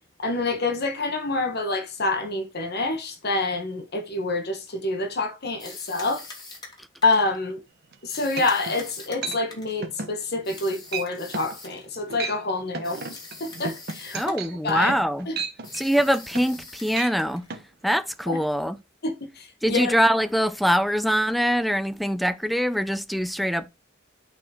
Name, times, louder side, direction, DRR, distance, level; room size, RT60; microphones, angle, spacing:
voice 1, 0.2-6.2 7.0-7.6 8.0-14.3 14.6-14.9 15.3-15.4 18.3-18.4 19.0-20.0, left 3 dB, 60° left, 1.7 m, -27 dB
sound 1, 5.6-7.3 8.1-9.8 10.4-11.9 12.8-14.4 14.7-15.0 15.6-17.5, left 3 dB, 20° left, 2.8 m, -43 dB
sound 2, 7.9-8.0 8.4-8.8 9.2-9.4 9.8-10.2 10.5-10.7 10.9-11.1 11.3-11.6 12.0-12.4 12.7-16.6 16.9-17.1 17.5-17.6, right 4 dB, 55° right, 1.1 m, -33 dB
voice 2, 14.1-15.3 15.7-17.4 17.8-18.8 19.6-23.7, equal, ahead, 0.5 m, -23 dB
8.6 x 4.4 x 4.5 m
head